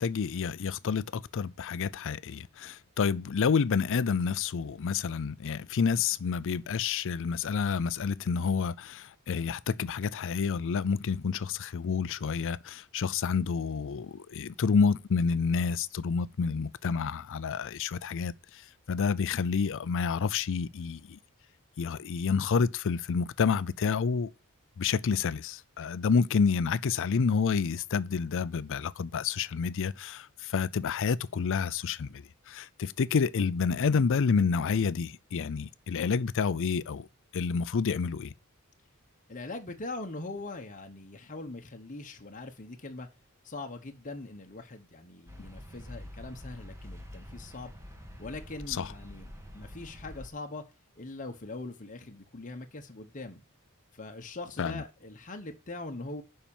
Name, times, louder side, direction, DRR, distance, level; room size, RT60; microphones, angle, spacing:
voice 1, 0.0-18.6 18.9-21.2 21.8-24.3 24.8-37.1 37.3-38.3 48.8-48.9 54.6-54.8, left 5 dB, 60° left, 0.5 m, -29 dB
voice 2, 39.3-43.1 43.4-47.7 48.2-50.7 51.0-53.4 53.9-56.2, left 2 dB, 35° left, 1.0 m, -42 dB
sound 1, 45.3-50.3, equal, 15° right, 1.6 m, -46 dB
7.2 x 5.7 x 7.1 m
head